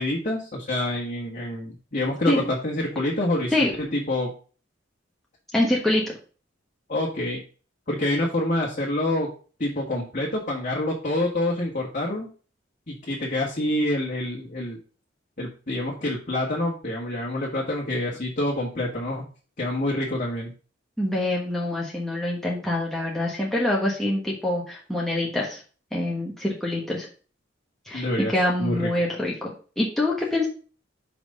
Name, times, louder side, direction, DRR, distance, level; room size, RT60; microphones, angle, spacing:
voice 1, 0.0-3.5 3.9-4.3 6.9-7.4 7.9-9.3 9.6-12.3 12.9-14.8 15.4-19.2 19.6-20.5 27.9-28.3 28.6-28.9, left 1 dB, 40° left, -3 dB, 1.6 m, -27 dB
voice 2, 5.5-6.1 21.0-25.6 25.9-27.1 27.9-30.5, left 1 dB, ahead, -4 dB, 1.3 m, -25 dB
6.0 x 5.2 x 5.4 m, 0.39 s
head